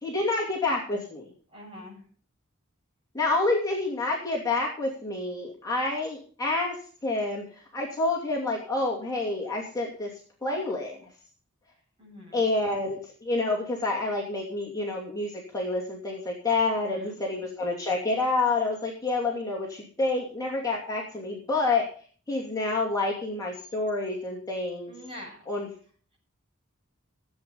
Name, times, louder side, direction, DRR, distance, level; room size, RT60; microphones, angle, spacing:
voice 1, 0.0-1.3 3.1-10.1 10.4-11.0 12.3-21.9 22.3-24.9 25.5-25.7, left 2 dB, 15° left, -3 dB, 2.7 m, -28 dB
voice 2, 1.5-2.0 12.0-12.5 16.7-17.2 24.9-25.4, left 1 dB, 25° right, -2 dB, 7.7 m, -44 dB
15.5 x 8.5 x 5.5 m, 0.43 s
head